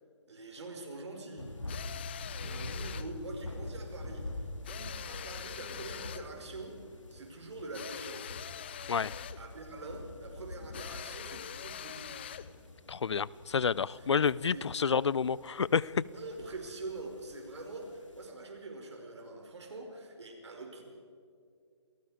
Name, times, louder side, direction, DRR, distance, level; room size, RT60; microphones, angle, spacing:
voice 1, 0.3-1.5 2.0-4.3 4.7-6.7 7.1-8.4 9.4-12.4 14.0-14.1 14.5-14.6 16.1-20.8, right 2 dB, 65° right, 3 dB, 5.2 m, -44 dB
sound 1, 1.4-18.3, left 2 dB, 90° left, 2.6 m, -45 dB
sound 2, 1.7-3.1 4.6-6.3 7.7-9.5 10.7-12.5, left 10 dB, 20° left, 0.4 m, -44 dB
voice 2, 12.9-16.0, left 6 dB, 65° left, 22 dB, 0.6 m, -29 dB
28.0 x 19.0 x 5.1 m, 2.3 s
figure-of-eight pair, 155°, 16 cm